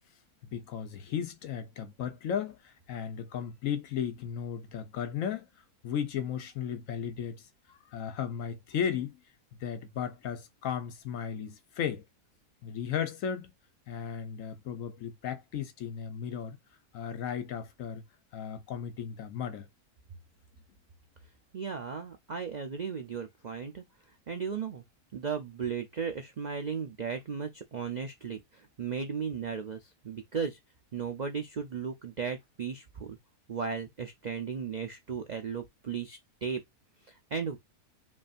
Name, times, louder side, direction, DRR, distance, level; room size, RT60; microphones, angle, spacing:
voice 1, 0.4-5.5 5.8-7.4 7.7-9.2 9.6-12.0 12.6-13.5 13.9-16.6 16.9-18.0 18.3-19.7, left 8 dB, 65° left, 1.0 m, -35 dB
voice 2, 21.5-23.8 24.3-24.8 25.1-30.6 30.9-33.2 33.5-36.6 37.1-37.6, right 6 dB, 75° right, 0.4 m, -36 dB
5.3 x 2.7 x 2.5 m
omnidirectional pair, 1.6 m